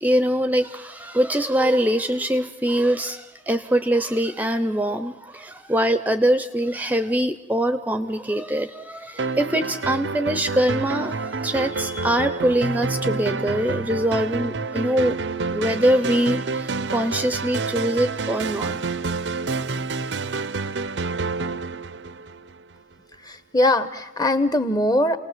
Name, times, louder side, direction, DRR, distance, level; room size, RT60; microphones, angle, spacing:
voice 1, 0.0-15.2 15.5-18.8, right 1 dB, 10° right, 10 dB, 0.7 m, -23 dB
sound 1, 9.2-22.7, right 4 dB, 75° right, 0.7 m, -28 dB
voice 2, 23.2-25.2, left 1 dB, 20° left, 11 dB, 1.1 m, -21 dB
29.0 x 19.0 x 7.5 m, 1.2 s
head